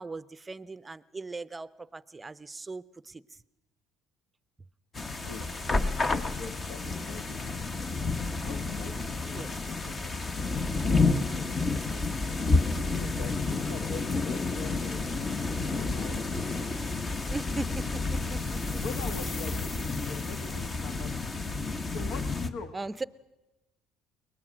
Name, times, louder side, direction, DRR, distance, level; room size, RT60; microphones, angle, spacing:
voice 1, 0.0-3.2 8.2-8.3 9.3-9.5 17.3-18.8 22.7-23.0, right 3 dB, 20° right, 17 dB, 0.6 m, -39 dB
sound 1, 5.0-22.5, left 3 dB, 30° left, 1.1 m, -30 dB
voice 2, 6.3-7.5 8.4-12.0 12.6-16.3 18.7-21.4 21.9-22.7, left 5 dB, 70° left, 7 dB, 1.5 m, -44 dB
sound 2, 18.0-21.0, left 3 dB, 50° left, 2.3 m, -45 dB
23.0 x 19.5 x 6.2 m, 1.0 s
supercardioid pair, 85°, 0 cm